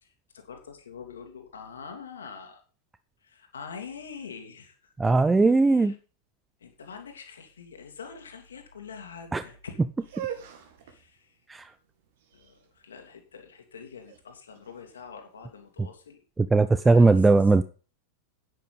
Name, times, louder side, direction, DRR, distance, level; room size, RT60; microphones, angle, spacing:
voice 1, 0.0-2.6 3.2-4.9 5.4-6.0 6.6-9.8 10.8-11.4 12.3-16.2 16.8-17.5, left 6 dB, 70° left, 2.5 m, -45 dB
voice 2, 5.0-5.9 9.3-9.4 11.5-11.6 16.5-17.6, right 3 dB, 10° right, 0.6 m, -19 dB
sound 1, 10.0-15.9, right 10 dB, 55° right, 2.4 m, -43 dB
10.0 x 9.4 x 5.4 m
figure-of-eight pair, 90°, 0 cm